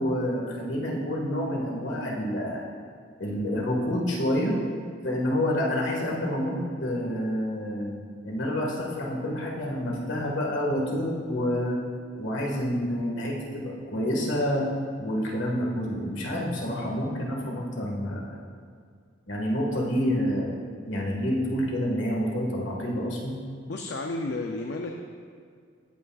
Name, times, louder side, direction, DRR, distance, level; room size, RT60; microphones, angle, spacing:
voice 1, 0.0-2.6 3.2-4.6 5.0-7.9 8.2-11.8 12.2-14.7 15.0-18.4 19.3-20.5 20.9-23.4, equal, 75° left, -2 dB, 1.7 m, -28 dB
voice 2, 23.7-25.0, left 2 dB, 60° left, 2 dB, 0.5 m, -32 dB
15.5 x 5.9 x 2.4 m, 2.1 s
head